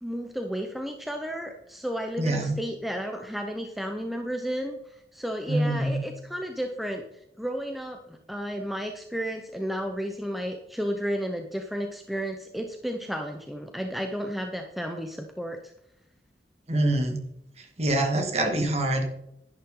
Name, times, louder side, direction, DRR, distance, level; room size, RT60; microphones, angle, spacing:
voice 1, 0.0-15.7 18.2-18.5, equal, ahead, 4 dB, 0.8 m, -33 dB
voice 2, 2.2-2.6 5.5-6.0 16.7-17.2 17.6-19.0, right 1 dB, 35° right, 3 dB, 2.2 m, -25 dB
11.5 x 11.0 x 3.8 m, 0.80 s
head